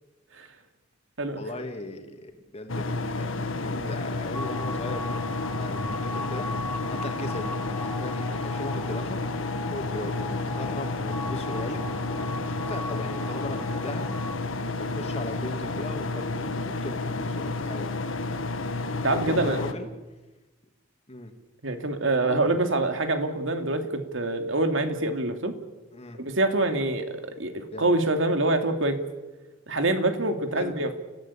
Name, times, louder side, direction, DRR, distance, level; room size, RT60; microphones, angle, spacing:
voice 1, 1.3-5.2 5.5-6.5 6.9-9.2 9.7-14.1 14.8-18.0 19.3-19.9 21.1-21.3 22.2-22.6 25.9-26.2 27.7-27.9 30.5-30.7, left 1 dB, 35° left, 5 dB, 2.8 m, -38 dB
sound 1, 2.7-19.7, left 3 dB, 80° left, 1.6 m, -31 dB
sound 2, 4.3-14.4, left 2 dB, 10° left, 1.1 m, -38 dB
voice 2, 19.0-19.6 21.6-25.5 26.2-29.0 29.7-31.0, right 2 dB, 75° right, 7 dB, 2.6 m, -25 dB
30.0 x 15.5 x 8.6 m, 1.1 s
head